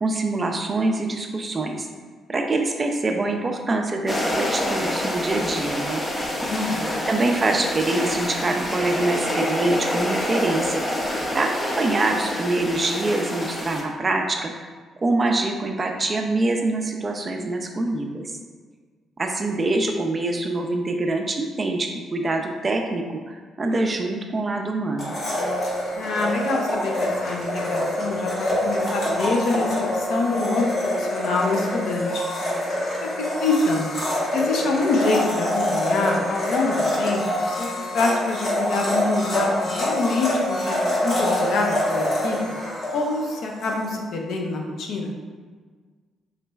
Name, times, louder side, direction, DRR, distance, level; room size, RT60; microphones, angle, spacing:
voice 1, 0.0-1.9 2.3-6.0 7.1-10.8 11.3-14.5 15.0-18.3 19.2-25.2, right 2 dB, 30° right, 3 dB, 0.3 m, -25 dB
sound 1, 4.1-13.8, left 1 dB, 25° left, 0.5 m, -27 dB
voice 2, 6.5-6.9 25.9-32.2 33.0-33.1 33.4-33.9 34.3-37.7 37.9-42.4 42.9-45.1, left 3 dB, 75° left, 1 dB, 0.5 m, -26 dB
Domestic sounds home sounds, 25.0-43.8, left 1 dB, 50° left, 1.0 m, -25 dB
3.8 x 3.1 x 2.2 m, 1.5 s
cardioid pair, 90°, 0 cm